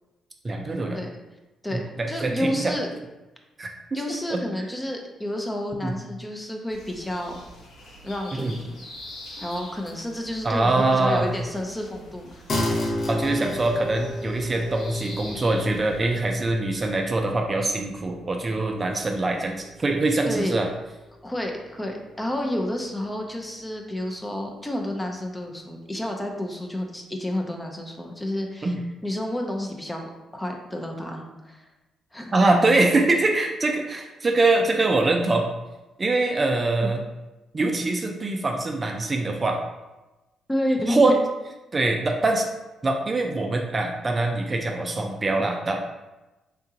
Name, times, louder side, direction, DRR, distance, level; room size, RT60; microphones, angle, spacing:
voice 1, 0.4-1.0 1.7-2.8 3.6-4.0 4.3-4.4 5.8-5.9 8.4-8.5 10.4-11.3 13.1-20.7 28.6-28.8 32.3-35.5 36.0-37.0 37.5-39.6 40.9-41.2 41.7-42.5 42.8-45.8, right 2 dB, 30° right, 2 dB, 0.4 m, -23 dB
voice 2, 1.6-2.9 3.9-7.4 8.0-8.8 9.4-12.4 12.7-12.8 13.4-13.5 20.3-20.6 21.2-28.7 29.0-31.6 32.1-32.5 36.3-36.4 40.5-41.2, left 1 dB, 10° left, 2 dB, 0.6 m, -30 dB
sound 1, 6.7-16.3, left 1 dB, 75° left, 1.0 m, -45 dB
sound 2, 12.5-22.2, left 1 dB, 45° left, 0.8 m, -34 dB
3.6 x 3.5 x 2.8 m, 1.1 s
cardioid pair, 90°, 0 cm